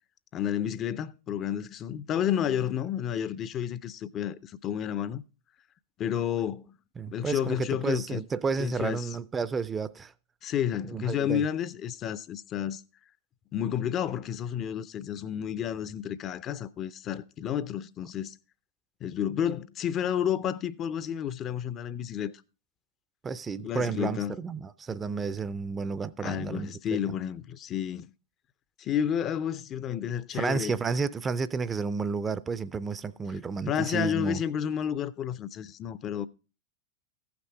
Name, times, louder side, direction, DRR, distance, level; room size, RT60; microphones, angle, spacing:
voice 1, 0.3-5.2 6.0-6.7 7.1-8.2 8.6-9.1 10.4-12.8 13.5-18.3 19.0-22.3 23.6-24.4 26.2-28.1 28.8-30.7 33.7-36.3, left 9 dB, 35° left, 0.5 m, -31 dB
voice 2, 7.0-10.1 10.8-11.5 23.2-26.7 30.3-34.4, right 5 dB, 20° right, 0.4 m, -31 dB
14.5 x 6.0 x 4.7 m
figure-of-eight pair, 95°, 0 cm